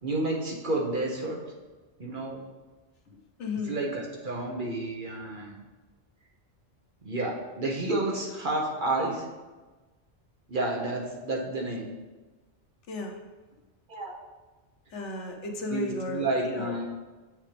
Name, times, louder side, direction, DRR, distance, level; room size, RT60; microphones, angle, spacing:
voice 1, 0.0-1.4 2.0-2.4 3.7-5.6 7.0-9.2 10.5-11.9 13.9-14.1 15.7-16.8, right 2 dB, 50° right, -2 dB, 1.2 m, -30 dB
voice 2, 3.4-3.8 12.9-13.2 14.9-16.7, left 3 dB, 85° left, 2 dB, 1.2 m, -34 dB
7.4 x 6.4 x 3.4 m, 1.3 s
omnidirectional pair, 1.2 m